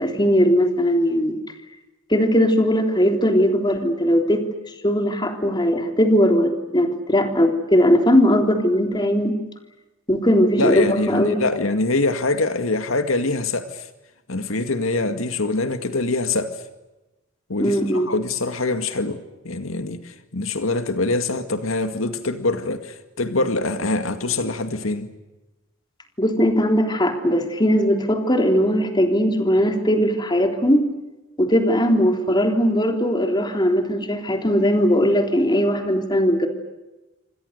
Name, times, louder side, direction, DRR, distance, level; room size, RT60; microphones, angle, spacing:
voice 1, 0.0-1.4 2.1-4.5 4.8-9.4 10.1-11.4 17.6-18.1 26.2-30.9 31.4-36.5, equal, 20° left, 3.5 m, -19 dB
voice 2, 10.6-13.9 14.3-16.6 17.5-25.1, left 2 dB, 90° left, 2.1 m, -24 dB
28.0 x 25.0 x 6.7 m
head